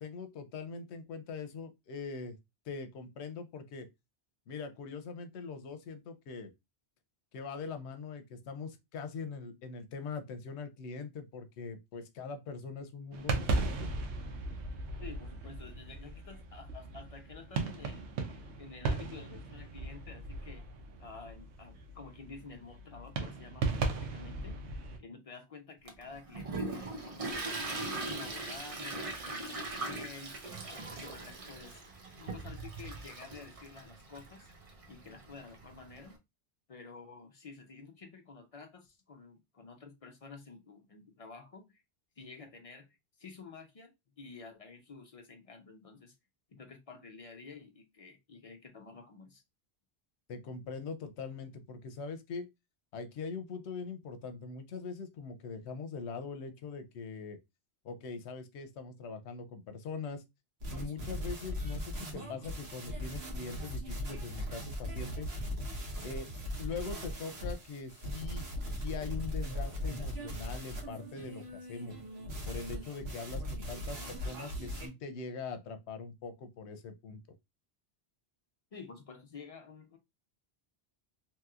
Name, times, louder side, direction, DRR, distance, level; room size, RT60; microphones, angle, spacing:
voice 1, 0.0-2.4 2.7-3.9 4.5-6.5 7.3-13.9 50.3-52.5 52.9-57.4 57.8-60.2 60.7-65.3 66.0-66.3 66.6-68.5 68.7-72.0 72.5-77.2, left 5 dB, 85° left, 0.9 m, -42 dB
sound 1, 13.1-25.0, right 3 dB, 90° right, 1.0 m, -37 dB
voice 2, 15.0-20.7 21.0-24.5 25.0-27.6 27.9-34.5 34.9-36.2 36.7-41.8 42.2-46.2 46.5-49.4 78.7-80.0, left 4 dB, 50° left, 0.4 m, -50 dB
Toilet flush, 25.9-36.1, right 2 dB, 40° right, 0.5 m, -41 dB
sound 2, 60.6-74.9, equal, 70° right, 1.3 m, -39 dB
3.0 x 2.9 x 2.3 m
omnidirectional pair, 1.1 m